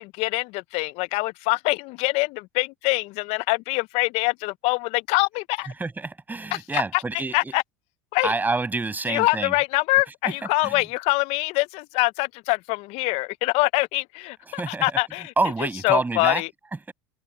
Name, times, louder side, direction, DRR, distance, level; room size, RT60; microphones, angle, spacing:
voice 1, 0.0-5.7 6.5-7.0 7.3-7.6 8.1-8.3 9.1-15.3 15.8-16.5, left 25 dB, 60° left, 0.6 m, -24 dB
voice 2, 5.8-7.5 8.2-9.5 10.6-10.8 14.5-15.0 15.4-16.4, right 3 dB, 15° right, 5.7 m, -27 dB
open air
hypercardioid pair, 85°, 12 cm